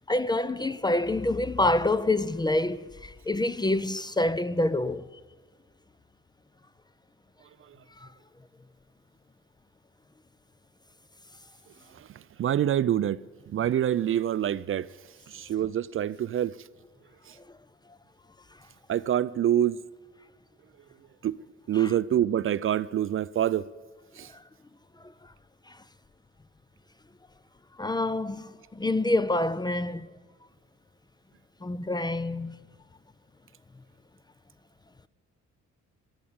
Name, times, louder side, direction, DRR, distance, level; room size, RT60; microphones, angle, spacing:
voice 1, 0.1-5.0 8.0-8.1 21.8-21.9 24.3-24.4 25.7-25.8 27.8-30.1 31.6-32.6, left 2 dB, 15° left, 0.4 m, -27 dB
voice 2, 11.9-14.9 15.3-16.6 17.3-17.4 18.9-19.8 21.2-21.4 21.7-23.6 24.1-24.3, right 11 dB, 45° right, 0.4 m, -26 dB
14.0 x 10.5 x 8.7 m
cardioid pair, 90°, 30 cm